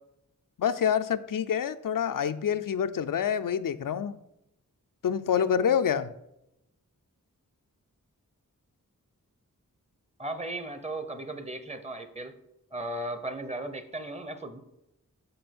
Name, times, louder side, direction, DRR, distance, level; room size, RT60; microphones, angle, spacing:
voice 1, 0.6-4.2 5.0-6.1, left 8 dB, 75° left, 11 dB, 0.5 m, -27 dB
voice 2, 10.2-12.3 12.7-14.6, right 1 dB, 20° right, 9 dB, 0.8 m, -36 dB
7.0 x 5.2 x 6.0 m, 0.85 s
wide cardioid pair, 80°, 33 cm